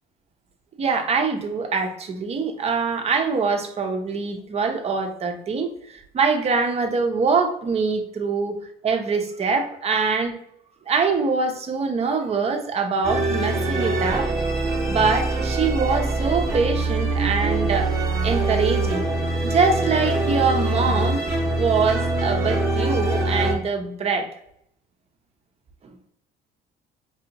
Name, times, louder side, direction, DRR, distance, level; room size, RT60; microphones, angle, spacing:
voice 1, 0.8-8.6 8.8-10.3 10.9-14.3 14.9-17.9 18.2-19.0 19.4-24.3, right 4 dB, 40° right, 5 dB, 0.7 m, -24 dB
sound 1, 13.0-23.5, right 2 dB, 15° right, 0.9 m, -23 dB
4.8 x 2.5 x 2.9 m, 0.72 s
cardioid pair, 110°, 17 cm